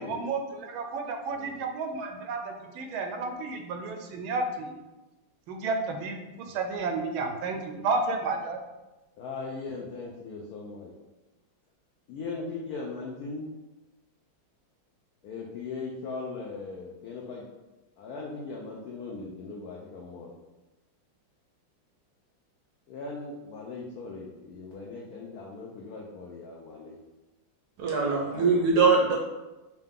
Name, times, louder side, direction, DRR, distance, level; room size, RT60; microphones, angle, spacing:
voice 1, 0.0-4.7 5.5-8.6, right 3 dB, 90° right, 4 dB, 1.4 m, -32 dB
voice 2, 9.2-10.9 12.1-13.5 15.2-17.4 18.0-20.3 22.9-27.0 28.1-28.5 28.9-29.2, left 3 dB, 80° left, -2 dB, 0.8 m, -39 dB
voice 3, 27.8-29.2, right 4 dB, 70° right, 0 dB, 1.0 m, -22 dB
4.7 x 2.2 x 3.5 m, 1.1 s
omnidirectional pair, 2.2 m